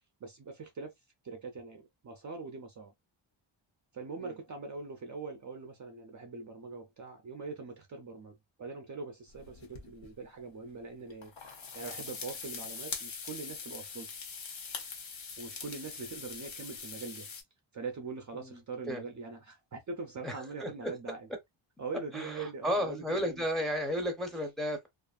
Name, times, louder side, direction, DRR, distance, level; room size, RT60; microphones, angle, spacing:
voice 1, 0.2-0.9 1.2-2.9 3.9-14.1 15.4-17.3 17.7-21.3 21.8-23.5, right 4 dB, 40° right, 0.5 m, -42 dB
sound 1, 9.3-10.1 11.1-17.4, left 5 dB, 70° left, 0.8 m, -43 dB
voice 2, 20.2-20.9 22.1-24.9, equal, ahead, 0.6 m, -33 dB
2.4 x 2.4 x 2.3 m
wide cardioid pair, 140°, 48 cm